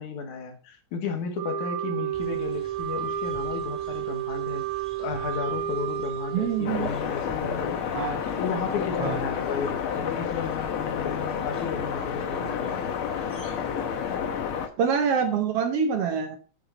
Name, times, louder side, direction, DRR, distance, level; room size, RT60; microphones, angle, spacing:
voice 1, 0.0-4.6 5.0-12.9, left 5 dB, 90° left, 5 dB, 2.9 m, -34 dB
Wind instrument woodwind instrument, 1.3-7.0, right 9 dB, 85° right, 2.0 m, -31 dB
sound 1, 2.1-14.2, left 2 dB, 5° right, 2.6 m, -50 dB
voice 2, 6.3-6.9 7.9-8.2 9.0-9.2 14.8-16.4, right 6 dB, 70° right, 7 dB, 1.5 m, -25 dB
sound 2, 6.6-14.7, left 7 dB, 60° left, 1.5 m, -30 dB
9.7 x 6.4 x 3.9 m, 0.39 s
omnidirectional pair, 3.4 m